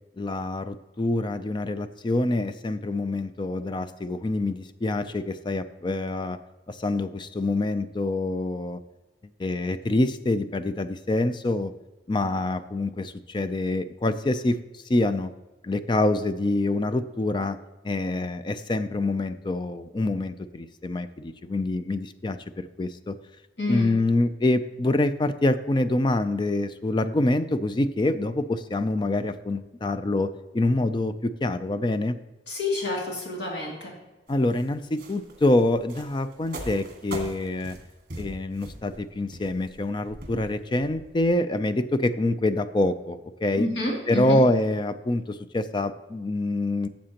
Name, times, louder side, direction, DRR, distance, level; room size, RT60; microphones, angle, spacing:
voice 1, 0.2-6.4 6.7-8.8 9.4-11.7 12.1-14.6 14.9-15.3 15.6-17.6 17.8-23.2 23.7-32.2 34.3-37.8 38.2-43.7 44.1-46.9, left 2 dB, 25° left, 12 dB, 0.4 m, -26 dB
voice 2, 23.6-23.9 32.5-34.0 43.6-44.4, left 2 dB, 65° left, -1 dB, 2.4 m, -29 dB
sound 1, 34.3-41.3, right 1 dB, 50° right, 1.6 m, -41 dB
12.5 x 7.3 x 2.9 m, 1.1 s
head